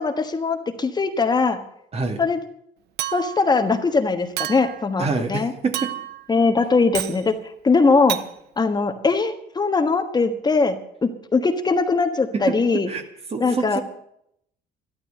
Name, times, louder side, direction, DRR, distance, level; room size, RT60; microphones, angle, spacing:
voice 1, 0.0-1.6 2.2-2.4 3.1-5.5 6.3-7.3 7.6-8.2 8.6-12.9 13.4-13.8, left 4 dB, 25° left, 6 dB, 1.4 m, -21 dB
voice 2, 1.9-2.2 5.0-5.9 12.3-13.0 13.3-13.8, right 4 dB, 35° right, 6 dB, 2.1 m, -26 dB
Chink clink, 3.0-3.5 4.4-4.8 5.7-6.2 6.9-7.2 8.1-8.3, right 12 dB, 75° right, 0.8 m, -29 dB
13.5 x 12.5 x 6.6 m, 0.73 s
cardioid pair, 110°, 17 cm